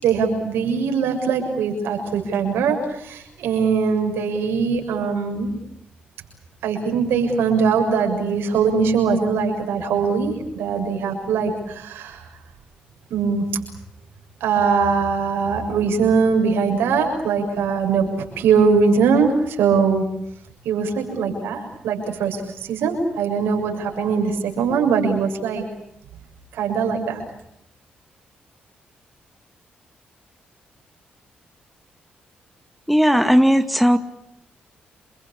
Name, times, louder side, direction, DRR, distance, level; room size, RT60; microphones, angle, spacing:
voice 1, 0.0-5.6 6.6-12.2 13.1-13.4 14.4-20.0 20.6-22.4 22.7-25.6 26.5-27.2, right 5 dB, 85° right, 3 dB, 6.8 m, -21 dB
voice 2, 32.9-34.0, equal, ahead, 8 dB, 2.1 m, -16 dB
28.0 x 23.0 x 8.6 m, 0.78 s
supercardioid pair, 55°, 4 cm